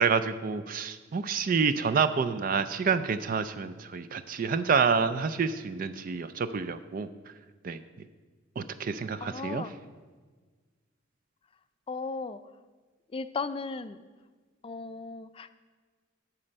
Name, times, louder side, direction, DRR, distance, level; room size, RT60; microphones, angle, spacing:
voice 1, 0.0-7.1 7.6-7.8 8.6-9.6, right 5 dB, 45° right, 11 dB, 0.4 m, -28 dB
voice 2, 9.2-9.7 11.9-12.4 13.1-14.0 14.6-15.5, left 4 dB, 25° left, 12 dB, 0.3 m, -36 dB
12.5 x 4.4 x 6.4 m, 1.4 s
head